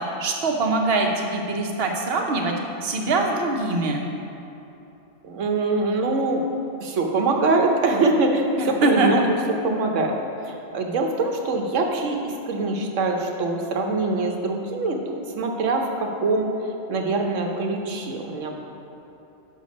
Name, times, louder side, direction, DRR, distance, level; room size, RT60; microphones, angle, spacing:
voice 1, 0.0-2.5 2.8-4.0 8.6-9.1, right 3 dB, 55° right, 1 dB, 1.0 m, -23 dB
voice 2, 5.2-6.4 6.8-10.1 10.4-16.5 16.9-18.5, right 3 dB, 90° right, 2 dB, 1.2 m, -23 dB
6.7 x 5.8 x 5.2 m, 3.0 s
omnidirectional pair, 1.2 m